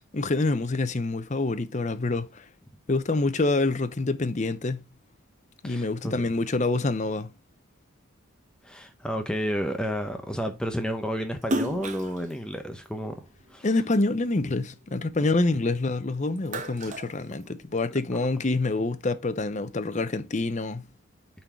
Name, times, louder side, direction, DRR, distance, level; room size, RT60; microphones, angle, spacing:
voice 1, 0.1-2.5 2.9-4.9 5.6-7.3 13.6-20.9, left 2 dB, 35° left, 0.7 m, -26 dB
voice 2, 5.6-6.1 8.6-13.2 13.5-13.7 16.9-17.0, equal, 5° left, 0.7 m, -31 dB
Splash splatter, 11.4-14.0 14.4-15.9 16.2-18.0, right 1 dB, 35° right, 0.8 m, -34 dB
8.6 x 3.9 x 4.5 m
head